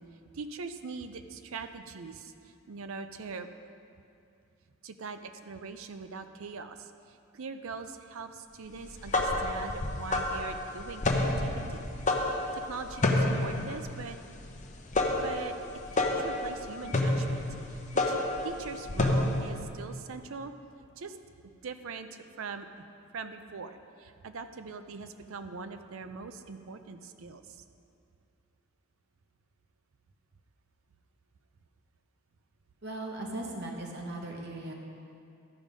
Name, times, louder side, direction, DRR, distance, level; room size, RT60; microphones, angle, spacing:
voice 1, 0.3-3.5 4.8-11.9 12.3-14.2 15.2-15.6 15.9-17.5 17.7-20.5 21.0-21.2 21.6-22.8 23.1-27.6, right 4 dB, 65° right, 9 dB, 0.5 m, -42 dB
sound 1, 8.8-19.6, left 2 dB, 35° left, 0.7 m, -29 dB
voice 2, 32.8-34.7, right 1 dB, 50° right, 0 dB, 0.9 m, -38 dB
12.5 x 5.2 x 5.1 m, 2.5 s
head